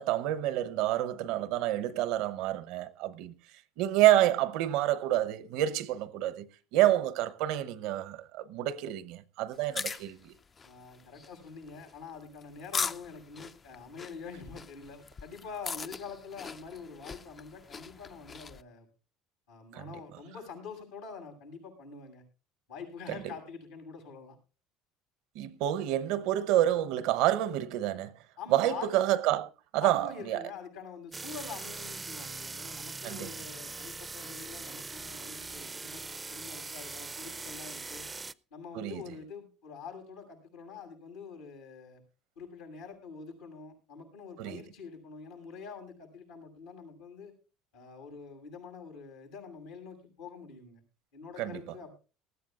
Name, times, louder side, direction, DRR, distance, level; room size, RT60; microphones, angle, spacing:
voice 1, 0.0-3.3 3.8-6.5 6.7-10.3 19.7-19.9 23.1-23.2 25.3-28.1 28.5-30.4 33.0-33.3 38.7-39.0 44.4-44.6 51.4-51.6, right 13 dB, 75° right, 0.9 m, -28 dB
sound 1, 9.5-18.6, left 5 dB, 30° left, 0.5 m, -40 dB
voice 2, 10.6-18.9 19.5-22.2 22.7-24.4 28.4-29.0 29.8-36.0 36.3-38.1 38.5-42.0 42.4-47.3 47.7-50.8 51.1-51.9, left 5 dB, 90° left, 7.3 m, -45 dB
sound 2, 31.1-38.3, right 3 dB, 20° right, 0.5 m, -41 dB
19.0 x 14.0 x 2.5 m
supercardioid pair, 90°, 0 cm